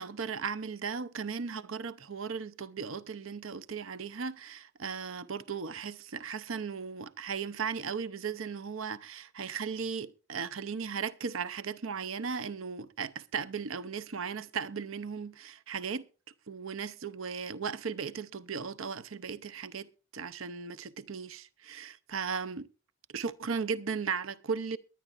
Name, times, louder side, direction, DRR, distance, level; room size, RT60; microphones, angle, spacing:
voice 1, 0.0-16.1 16.5-22.7 23.1-24.8, right 6 dB, 70° right, 0.7 m, -36 dB
22.5 x 10.0 x 2.5 m
head